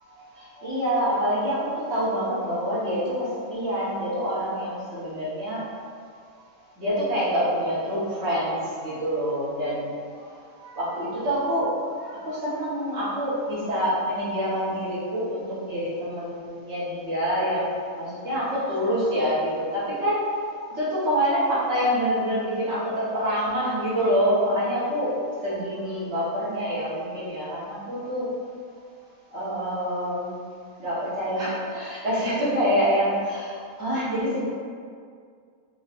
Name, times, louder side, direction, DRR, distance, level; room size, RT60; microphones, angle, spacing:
voice 1, 0.1-5.8 6.0-6.2 6.8-25.2 25.4-28.3 29.3-30.4 30.8-34.4, equal, 55° right, -10 dB, 1.5 m, -26 dB
3.8 x 2.9 x 2.5 m, 2.1 s
omnidirectional pair, 1.5 m